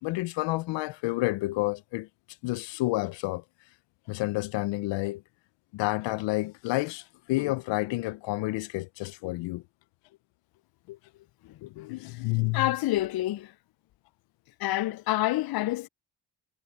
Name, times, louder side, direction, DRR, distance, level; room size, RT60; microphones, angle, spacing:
voice 1, 0.0-2.1 2.4-3.4 4.1-5.2 5.7-9.6 10.9-11.0 11.6-12.7, left 20 dB, 80° left, 0.9 m, -30 dB
voice 2, 12.5-13.5 14.6-15.9, left 16 dB, 55° left, 0.6 m, -27 dB
hypercardioid pair, 50°, 43 cm